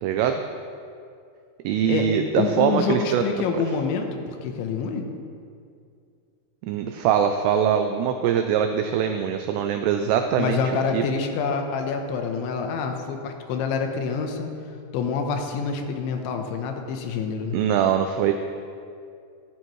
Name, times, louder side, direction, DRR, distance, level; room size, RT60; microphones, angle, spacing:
voice 1, 0.0-0.4 1.6-3.2 3.5-3.6 6.7-10.6 10.9-11.0 17.5-18.3, right 8 dB, 90° right, 6 dB, 2.4 m, -22 dB
voice 2, 2.4-5.0 10.4-14.5 14.9-17.6, left 5 dB, 80° left, 4 dB, 3.2 m, -27 dB
14.5 x 13.0 x 3.1 m, 2.4 s
omnidirectional pair, 5.4 m